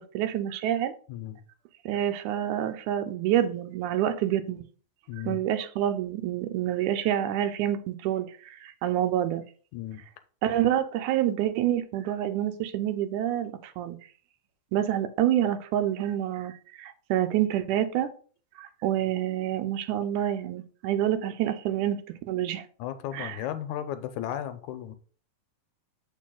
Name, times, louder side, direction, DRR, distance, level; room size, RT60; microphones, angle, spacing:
voice 1, 0.0-0.9 1.9-4.7 5.3-9.4 10.4-14.0 14.7-16.5 16.8-18.1 18.6-22.0 22.3-22.7 23.1-23.4, right 11 dB, 90° right, 10 dB, 2.2 m, -27 dB
voice 2, 1.1-1.4 5.1-5.4 9.7-10.0 22.8-25.0, left 11 dB, 85° left, 10 dB, 2.1 m, -35 dB
7.5 x 4.7 x 3.8 m, 0.41 s
omnidirectional pair, 3.4 m